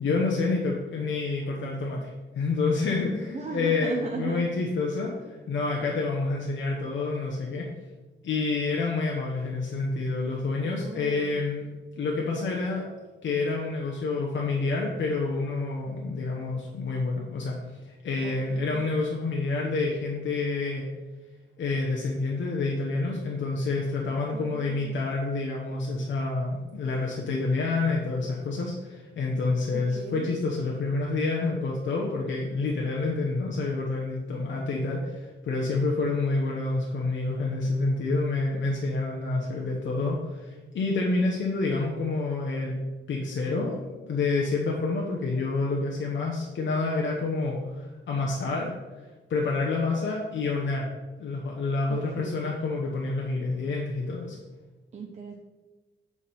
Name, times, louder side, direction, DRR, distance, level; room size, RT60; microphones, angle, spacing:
voice 1, 0.0-7.7 8.2-11.6 12.0-12.8 13.2-17.6 17.8-20.9 21.6-42.8 43.1-48.7 49.3-50.9 51.2-54.4, left 3 dB, 70° left, -2 dB, 1.0 m, -28 dB
voice 2, 3.3-4.5 10.6-11.4 18.2-18.8 24.3-25.0 29.9-30.3 51.9-52.4 54.9-55.4, right 4 dB, 35° right, 1 dB, 0.6 m, -37 dB
7.4 x 4.8 x 4.3 m, 1.2 s
wide cardioid pair, 175°, 20 cm